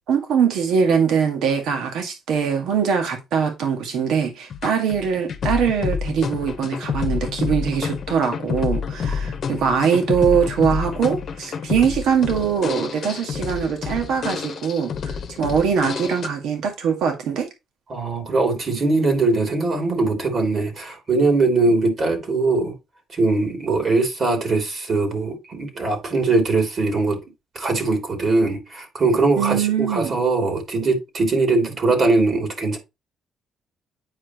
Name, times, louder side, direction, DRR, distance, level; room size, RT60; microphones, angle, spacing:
voice 1, 0.1-17.5 29.4-30.1, right 7 dB, 80° right, 1.9 m, -22 dB
sound 1, 4.5-16.3, left 6 dB, 55° left, 1.0 m, -28 dB
voice 2, 17.9-22.7 23.1-27.2 27.5-32.8, right 3 dB, 50° right, 3.1 m, -21 dB
8.7 x 5.1 x 3.0 m
cardioid pair, 90°, 0 cm